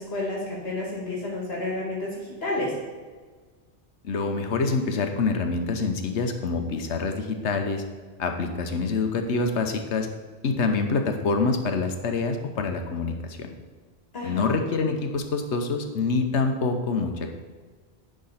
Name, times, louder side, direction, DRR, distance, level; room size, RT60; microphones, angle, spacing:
voice 1, 0.0-2.7 14.1-14.6, left 2 dB, 60° left, -3 dB, 2.0 m, -30 dB
voice 2, 4.0-7.8 8.2-10.1 10.4-13.5 14.2-17.3, left 4 dB, 80° left, 5 dB, 1.2 m, -26 dB
10.5 x 3.9 x 5.6 m, 1.5 s
omnidirectional pair, 1.2 m